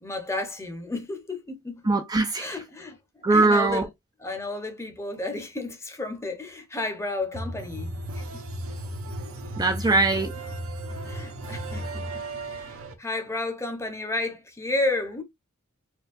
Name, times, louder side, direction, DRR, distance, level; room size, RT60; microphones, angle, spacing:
voice 1, 0.0-1.9 2.3-3.9 4.2-8.4 9.9-10.0 10.9-12.1 12.5-15.2, left 2 dB, 15° left, 0.8 m, -32 dB
voice 2, 1.9-2.6 3.2-3.8 9.6-10.3, right 3 dB, 20° right, 0.4 m, -21 dB
sound 1, 7.3-12.9, right 1 dB, 70° right, 0.7 m, -35 dB
4.4 x 2.3 x 2.5 m
head